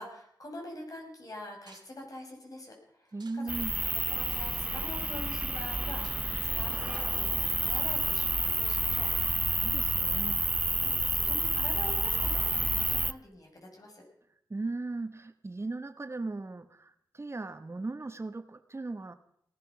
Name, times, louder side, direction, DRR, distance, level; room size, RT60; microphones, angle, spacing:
voice 1, 0.0-3.5 4.1-9.1 10.8-14.0, left 1 dB, 50° left, 1 dB, 6.3 m, -45 dB
sound 1, 1.6-1.9 3.1-3.5 3.8-3.9 4.2-4.6 5.9-6.2 6.9-7.1 7.5-7.8, right 4 dB, 60° right, 2.5 m, -58 dB
voice 2, 3.1-3.8 9.1-10.5 14.5-19.1, right 3 dB, 35° right, 10 dB, 1.1 m, -38 dB
sound 2, 3.5-13.1, right 1 dB, 15° right, 0.6 m, -29 dB
18.0 x 12.5 x 6.0 m, 0.71 s
cardioid pair, 50°, 8 cm